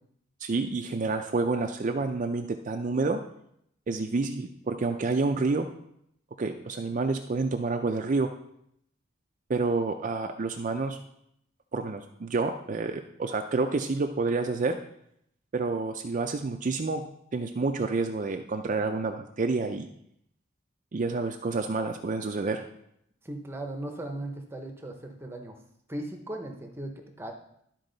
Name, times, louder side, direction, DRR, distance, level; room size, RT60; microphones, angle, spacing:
voice 1, 0.4-3.2 3.9-5.7 6.4-8.3 9.5-11.0 11.7-14.8 15.5-17.0 17.3-19.9 20.9-22.6, right 3 dB, 40° right, 5 dB, 0.4 m, -28 dB
voice 2, 23.2-25.6 25.9-27.3, right 1 dB, 10° right, 3 dB, 0.8 m, -37 dB
12.0 x 4.5 x 3.9 m, 0.73 s
head